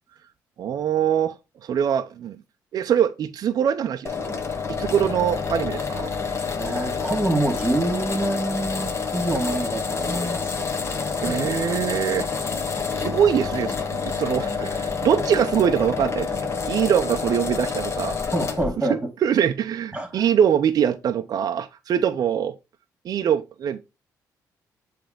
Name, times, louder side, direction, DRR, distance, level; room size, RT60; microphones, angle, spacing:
voice 1, 0.6-1.4 1.6-2.4 2.7-4.4 4.7-6.1 11.2-12.3 12.9-16.4 16.7-18.2 18.9-22.5 23.0-23.8, right 9 dB, 60° right, 0.6 m, -23 dB
sound 1, 4.1-18.7, left 5 dB, 40° left, 1.4 m, -28 dB
voice 2, 6.6-10.5 11.1-11.5 18.2-19.1 19.9-20.2, right 1 dB, 10° right, 2.0 m, -26 dB
7.7 x 3.4 x 5.0 m
cardioid pair, 95°, 7 cm